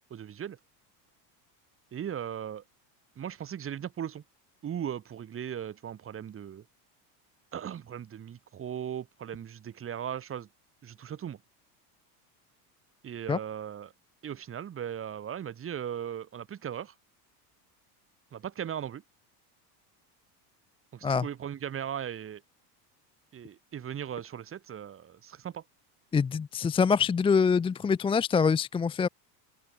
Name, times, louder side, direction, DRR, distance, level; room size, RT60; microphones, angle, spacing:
voice 1, 0.1-0.6 1.9-2.6 3.2-4.2 4.6-6.7 7.5-10.5 10.8-11.4 13.0-13.9 14.2-16.9 18.3-19.0 20.9-22.4 23.3-25.6, right 9 dB, 25° right, 3.6 m, -38 dB
voice 2, 26.1-29.1, left 5 dB, 10° left, 0.6 m, -25 dB
open air
supercardioid pair, 145°, 48 cm